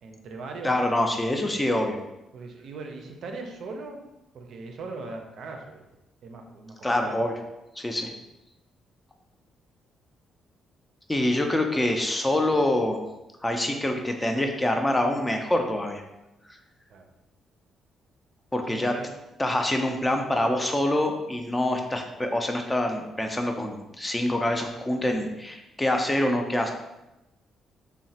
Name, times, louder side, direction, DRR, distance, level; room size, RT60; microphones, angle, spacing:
voice 1, 0.0-1.7 2.3-4.0 4.3-5.8 6.2-7.2 16.9-17.0 18.7-19.1, right 3 dB, 65° right, 3 dB, 0.4 m, -40 dB
voice 2, 0.6-2.0 6.8-7.3 7.8-8.1 11.1-13.0 13.4-16.0 18.5-18.9 19.4-26.7, left 1 dB, 15° left, 4 dB, 0.3 m, -25 dB
3.0 x 2.0 x 2.7 m, 0.96 s
cardioid pair, 90°, 0 cm